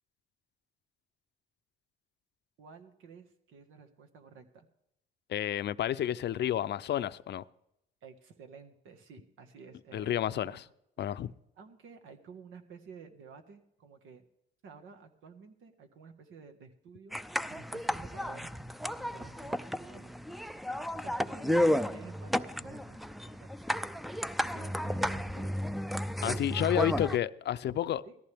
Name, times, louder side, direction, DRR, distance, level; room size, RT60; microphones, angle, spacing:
voice 1, 2.6-4.7 8.0-10.6 11.0-11.1 11.6-14.2 14.6-17.2 17.5-18.5 18.9-20.2 20.9-23.5 24.4-25.6 26.2-26.7 28.0-28.2, right 5 dB, 85° right, 1.7 m, -51 dB
voice 2, 5.3-7.4 9.9-10.6 11.0-11.3 26.2-28.0, left 11 dB, 60° left, 0.5 m, -30 dB
sound 1, 17.1-27.2, equal, ahead, 0.4 m, -33 dB
17.5 x 14.5 x 3.5 m
cardioid pair, 90°, 20 cm